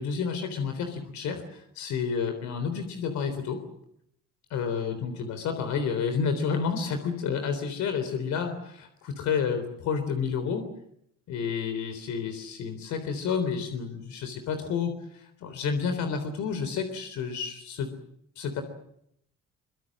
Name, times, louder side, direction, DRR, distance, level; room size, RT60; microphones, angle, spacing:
voice 1, 0.0-3.6 4.5-10.6 11.3-17.9 18.4-18.6, left 6 dB, 75° left, 8 dB, 3.7 m, -30 dB
24.5 x 23.5 x 7.7 m, 0.73 s
cardioid pair, 120°, 29 cm